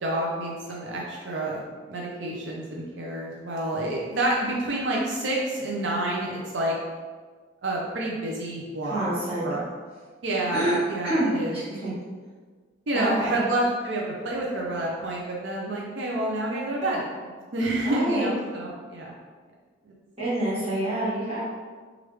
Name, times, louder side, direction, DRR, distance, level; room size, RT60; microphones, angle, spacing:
voice 1, 0.0-1.6 1.9-6.7 7.6-9.0 9.4-9.6 10.2-12.0 12.9-19.1 19.8-19.9, right 1 dB, 90° right, -3 dB, 0.5 m, -28 dB
voice 2, 8.8-9.5 10.5-10.8 11.0-11.3 11.7-11.9 12.9-13.4 17.8-18.3 20.2-21.4, right 1 dB, 30° right, -10 dB, 1.2 m, -27 dB
3.1 x 2.4 x 3.2 m, 1.5 s
head